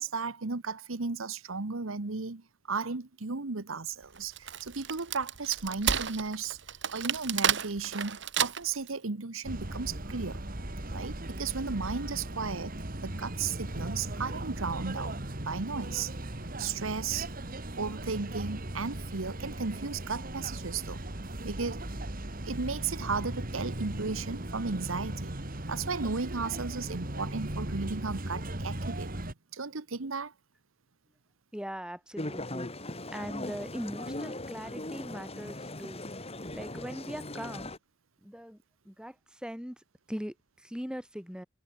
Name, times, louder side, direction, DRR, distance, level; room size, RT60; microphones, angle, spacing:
voice 1, 0.0-10.4 10.9-12.7 13.0-15.2 15.5-16.1 16.6-17.3 17.8-21.0 21.4-21.8 22.4-25.3 25.7-29.1 29.5-30.3, right 4 dB, 90° right, 1.3 m, -35 dB
Wood, 4.1-8.9, right 8 dB, 60° right, 2.1 m, -31 dB
sound 1, 9.4-29.3, right 1 dB, 45° right, 2.6 m, -38 dB
voice 2, 31.5-32.7 33.1-36.0 36.5-37.7 38.2-38.6 38.8-41.5, equal, 5° right, 7.9 m, -40 dB
sound 2, 32.2-37.8, left 1 dB, 30° left, 5.8 m, -39 dB
head